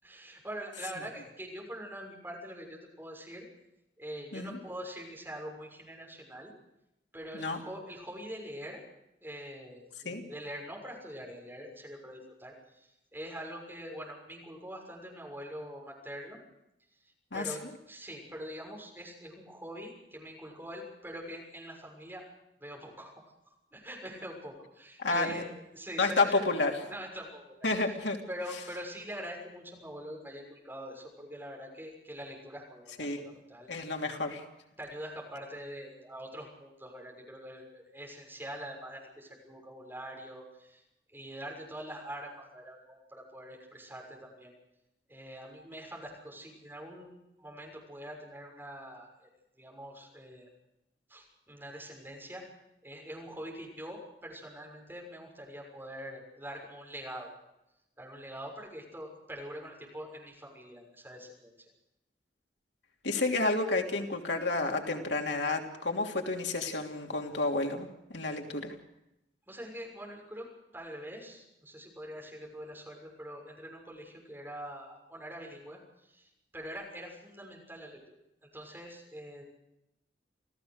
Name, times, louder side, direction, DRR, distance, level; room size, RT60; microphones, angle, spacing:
voice 1, 0.0-3.5 4.0-6.5 7.1-8.8 9.2-16.4 17.3-22.2 22.6-23.1 23.7-26.5 26.8-27.6 28.3-33.1 33.5-34.0 34.8-40.8 41.1-44.5 45.1-49.3 49.6-50.5 51.1-52.4 52.8-57.3 58.0-61.5 69.5-78.0 78.5-79.4, equal, 10° right, 0 dB, 6.5 m, -44 dB
voice 2, 25.0-25.4 26.0-26.9 27.6-28.2 33.0-33.4 33.7-34.4 63.0-68.7, left 3 dB, 85° left, 2 dB, 3.1 m, -30 dB
28.0 x 16.0 x 6.6 m, 0.87 s
head